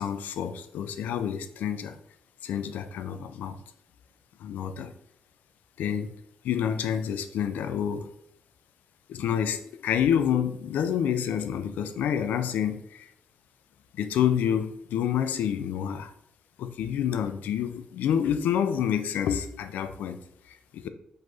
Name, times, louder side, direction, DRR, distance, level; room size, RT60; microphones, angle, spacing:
voice 1, 0.0-2.0 2.4-3.6 4.4-4.9 5.8-6.1 6.4-8.1 9.1-13.1 13.9-16.1 16.6-20.9, left 9 dB, 75° left, 10 dB, 0.4 m, -28 dB
4.9 x 4.0 x 2.7 m, 0.77 s
supercardioid pair, 50°, 3 cm